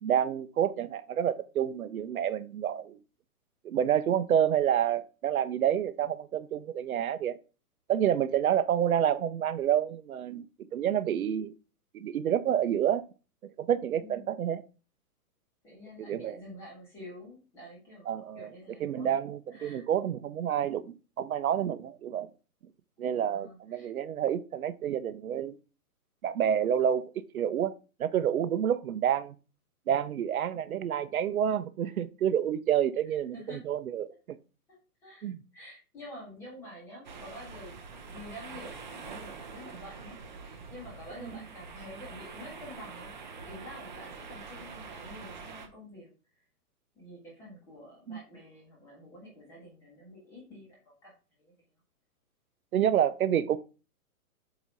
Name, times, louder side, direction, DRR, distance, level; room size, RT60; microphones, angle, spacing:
voice 1, 0.0-3.0 3.6-7.4 7.9-10.5 10.7-11.5 11.9-13.0 13.6-14.6 16.1-16.4 18.1-18.5 18.8-22.3 23.0-25.5 26.2-27.0 27.3-27.7 28.0-29.3 29.9-34.1 35.2-35.4 48.1-48.2 52.7-53.6, right 9 dB, 70° right, 0.7 m, -28 dB
voice 2, 14.0-14.3 15.6-19.1 19.5-19.9 23.0-23.9 33.3-33.6 35.0-43.1 43.4-46.1 47.0-51.1 51.4-51.5, left 1 dB, 5° left, 1.0 m, -48 dB
sound 1, 37.0-45.7, right 5 dB, 30° right, 0.7 m, -45 dB
7.9 x 2.7 x 5.1 m
hypercardioid pair, 175°, 45 cm